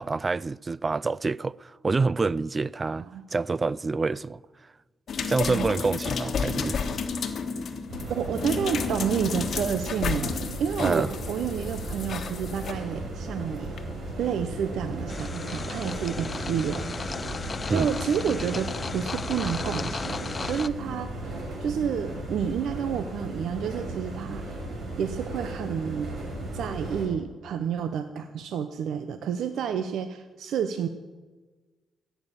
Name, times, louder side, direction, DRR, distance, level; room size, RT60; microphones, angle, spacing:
voice 1, 0.0-4.4 5.3-6.8 10.8-11.1 17.7-17.9, right 3 dB, 30° right, 0.3 m, -27 dB
sound 1, 5.1-12.7 13.8-13.9, left 5 dB, 55° left, 1.4 m, -32 dB
sound 2, 7.9-27.1, right 2 dB, 60° right, 5.4 m, -36 dB
voice 2, 8.1-13.7 14.2-16.9 17.7-21.2 21.6-24.6 25.0-26.1 26.5-30.9, right 7 dB, 80° right, 0.8 m, -30 dB
sound 3, 15.1-20.7, left 4 dB, 35° left, 0.5 m, -35 dB
15.0 x 9.4 x 7.0 m
cardioid pair, 100°, 0 cm